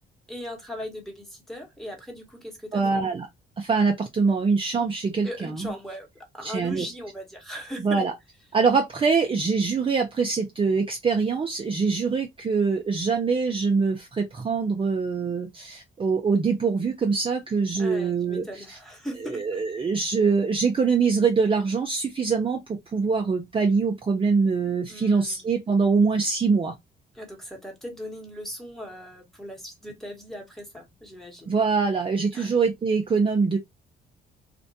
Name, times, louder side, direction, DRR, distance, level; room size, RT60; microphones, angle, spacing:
voice 1, 0.3-3.0 5.2-6.1 6.3-8.0 17.8-19.6 24.9-25.4 27.1-31.6 32.3-32.5, equal, ahead, 1.1 m, -38 dB
voice 2, 2.7-3.3 3.6-5.7 6.4-6.9 7.8-8.1 8.5-18.8 19.2-26.7 31.5-33.6, right 5 dB, 25° right, 0.5 m, -24 dB
2.5 x 2.1 x 2.6 m
cardioid pair, 90°, 20 cm